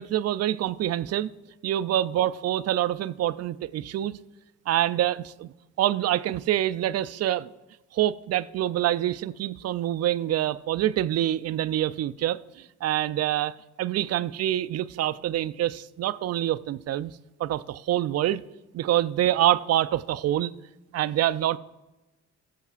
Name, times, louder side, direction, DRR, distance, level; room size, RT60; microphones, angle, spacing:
voice 1, 0.0-1.3 1.6-4.2 4.7-5.5 5.8-7.5 7.9-17.1 17.4-18.4 18.7-20.5 20.9-21.6, right 12 dB, 55° right, 0.5 m, -26 dB
17.5 x 7.2 x 2.4 m
cardioid pair, 90°, 30 cm